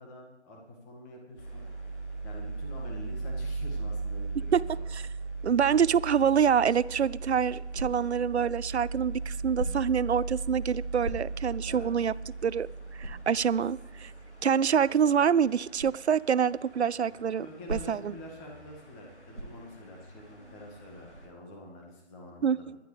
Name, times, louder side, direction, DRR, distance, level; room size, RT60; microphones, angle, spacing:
voice 1, 0.0-1.6 2.2-4.9 11.6-11.9 17.4-22.7, left 1 dB, 15° left, 0 dB, 2.0 m, -47 dB
sound 1, 1.4-21.3, right 3 dB, 80° left, 3.9 m, -39 dB
voice 2, 5.4-12.1 12.4-12.7 13.0-14.1 14.4-18.1 22.4-22.8, right 7 dB, 70° right, 21 dB, 0.5 m, -26 dB
sound 2, 7.7-8.3 9.5-10.1 11.0-11.6 12.1-12.2 13.0-13.3 15.8-16.0 17.7-18.2 19.3-19.7, right 2 dB, 90° right, 2.4 m, -38 dB
20.5 x 11.5 x 3.4 m, 1.1 s
figure-of-eight pair, 145°, 35 cm